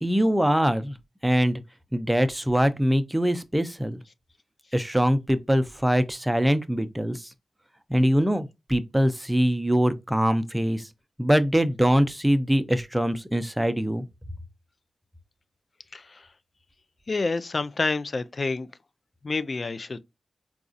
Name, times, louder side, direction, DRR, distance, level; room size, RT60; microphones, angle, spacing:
voice 1, 0.0-0.9 1.2-1.6 1.9-4.0 4.7-7.3 7.9-10.9 11.2-14.0, equal, 10° right, 0.6 m, -23 dB
voice 2, 15.9-16.3 17.1-18.7 19.2-20.0, left 3 dB, 50° left, 0.4 m, -28 dB
4.1 x 2.3 x 2.5 m
cardioid pair, 40°, 0 cm